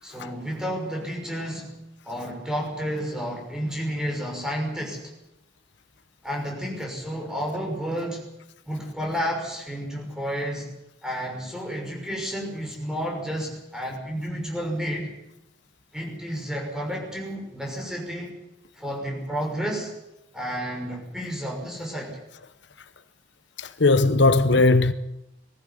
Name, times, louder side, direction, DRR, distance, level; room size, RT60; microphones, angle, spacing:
voice 1, 0.0-1.7 2.0-5.1 6.2-8.2 8.7-10.7 11.0-15.1 15.9-18.3 18.7-19.9 20.3-22.2, equal, 5° right, 6.1 m, -31 dB
voice 2, 23.6-24.9, left 3 dB, 65° left, 0.9 m, -18 dB
20.5 x 15.0 x 9.9 m
head